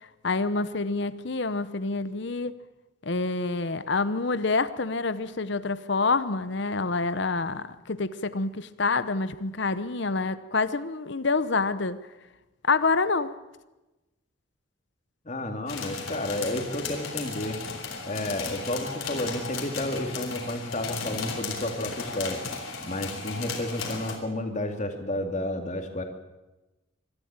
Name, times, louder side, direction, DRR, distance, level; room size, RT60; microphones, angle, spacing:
voice 1, 0.2-2.5 3.0-12.0 12.7-13.3, left 3 dB, 60° left, 14 dB, 0.8 m, -27 dB
voice 2, 15.2-17.6 18.0-22.4 22.8-26.0, left 1 dB, 35° left, 5 dB, 2.4 m, -31 dB
sound 1, 15.7-24.2, left 4 dB, 85° left, 3.8 m, -35 dB
24.5 x 13.5 x 8.9 m, 1.0 s
head